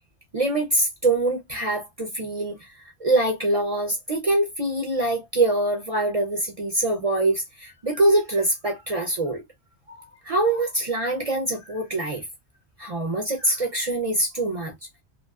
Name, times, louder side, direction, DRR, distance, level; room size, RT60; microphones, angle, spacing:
voice 1, 0.3-2.7 3.0-9.4 9.9-10.0 10.2-12.2 12.8-14.7, right 2 dB, 45° right, 0.4 m, -24 dB
2.5 x 2.2 x 2.2 m
omnidirectional pair, 1.2 m